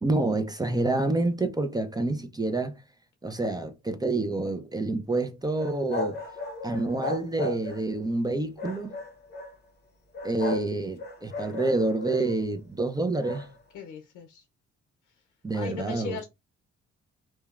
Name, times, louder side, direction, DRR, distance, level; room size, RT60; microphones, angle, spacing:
voice 1, 0.0-2.8 3.2-6.2 6.6-8.9 10.2-13.5 15.4-16.2, right 2 dB, 15° right, 0.4 m, -28 dB
sound 1, 5.6-8.0 8.6-9.5 10.1-10.7 11.0-12.4 13.2-13.5, left 2 dB, 35° left, 0.7 m, -35 dB
voice 2, 13.7-14.4 15.5-16.2, left 7 dB, 90° left, 0.6 m, -38 dB
2.9 x 2.1 x 2.3 m
cardioid pair, 90°, 30 cm